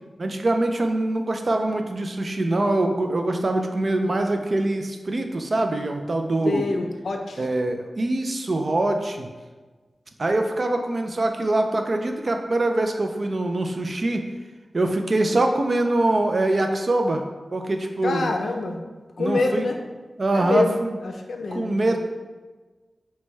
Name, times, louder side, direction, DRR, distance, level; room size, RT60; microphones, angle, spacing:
voice 1, 0.2-6.7 7.4-9.3 10.2-14.2 14.7-17.2 17.5-18.3 19.2-19.7 20.2-21.0 21.5-22.0, right 2 dB, 45° right, 4 dB, 0.4 m, -23 dB
voice 2, 6.4-7.4 18.0-18.8 19.2-19.8 20.3-20.8 21.0-21.8, left 3 dB, 85° left, 4 dB, 0.4 m, -26 dB
6.0 x 2.2 x 3.2 m, 1.3 s
wide cardioid pair, 95°, 0 cm